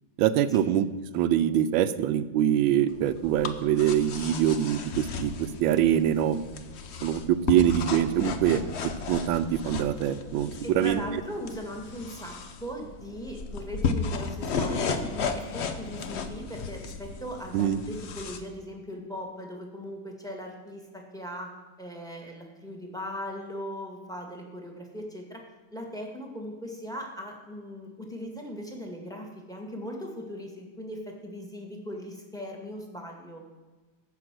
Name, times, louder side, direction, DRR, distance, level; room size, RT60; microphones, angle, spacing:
voice 1, 0.2-0.9 1.1-6.4 7.0-11.0 17.5-17.8, right 10 dB, 75° right, 13 dB, 1.3 m, -24 dB
sound 1, 2.9-18.4, left 5 dB, 70° left, 0.6 m, -34 dB
voice 2, 10.6-12.3 12.6-21.5 21.8-25.4 25.7-33.4, equal, ahead, 1 dB, 1.7 m, -39 dB
14.5 x 5.7 x 6.2 m, 1.3 s
omnidirectional pair, 2.2 m